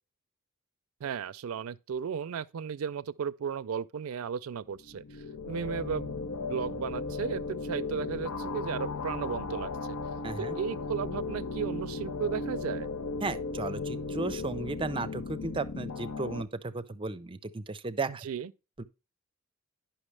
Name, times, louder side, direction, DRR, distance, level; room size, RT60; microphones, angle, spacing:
voice 1, 1.0-6.2 6.5-10.0 10.4-12.9 18.1-18.5, right 7 dB, 85° right, 0.4 m, -35 dB
sound 1, 4.8-16.4, left 3 dB, 85° left, 0.7 m, -36 dB
voice 2, 10.2-10.6 13.2-18.3 18.8-18.9, right 3 dB, 25° right, 0.5 m, -35 dB
9.9 x 5.7 x 3.2 m
head